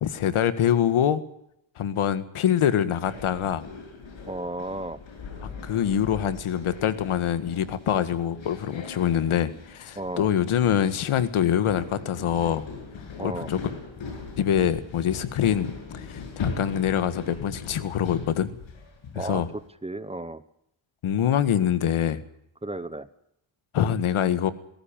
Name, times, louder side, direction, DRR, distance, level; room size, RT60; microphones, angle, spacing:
voice 1, 0.0-1.2 1.8-3.6 5.4-12.6 13.2-13.6 14.4-18.6 19.1-19.5 21.0-22.2 23.7-24.5, left 9 dB, 85° left, 13 dB, 1.8 m, -25 dB
sound 1, 3.1-19.6, left 4 dB, 70° left, 7.6 m, -40 dB
voice 2, 4.3-5.0 10.0-10.3 13.2-13.5 19.1-19.4 19.8-20.4 22.6-23.1, right 2 dB, 15° right, 14 dB, 0.9 m, -33 dB
20.0 x 17.5 x 9.0 m, 0.77 s
wide cardioid pair, 145°, 48 cm